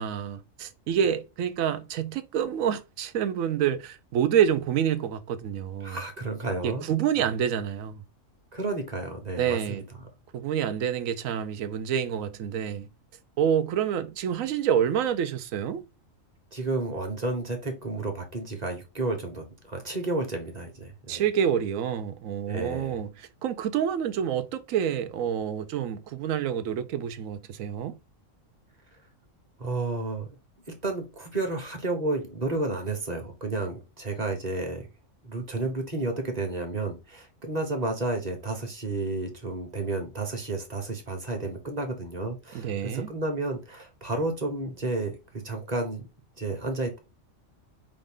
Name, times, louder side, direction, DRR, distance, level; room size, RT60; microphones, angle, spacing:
voice 1, 0.0-6.0 6.6-8.0 9.4-9.8 10.3-12.9 13.4-15.8 21.1-27.9 42.5-43.1, right 9 dB, 85° right, 1.0 m, -27 dB
voice 2, 5.8-6.9 8.5-9.8 16.5-21.2 22.5-23.0 29.6-30.3 30.8-34.9 35.2-45.1 45.4-46.0 46.4-47.0, right 2 dB, 35° right, 1.1 m, -31 dB
4.9 x 2.6 x 3.6 m
omnidirectional pair, 1.3 m